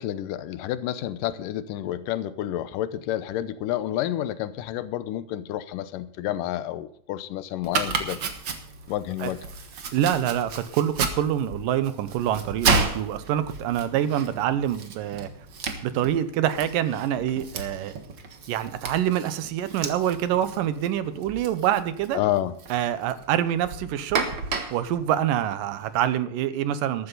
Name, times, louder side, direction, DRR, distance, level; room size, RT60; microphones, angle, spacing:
voice 1, 0.0-8.2 8.9-9.4 22.1-22.6, left 12 dB, 90° left, 15 dB, 2.5 m, -29 dB
Domestic sounds home sounds, 7.6-26.1, right 4 dB, 45° right, 1.7 m, -33 dB
voice 2, 9.9-15.3 15.8-17.9 18.5-22.2 22.7-24.3 24.7-27.1, right 11 dB, 85° right, 13 dB, 2.7 m, -26 dB
14.0 x 13.5 x 4.0 m, 0.64 s
omnidirectional pair, 3.8 m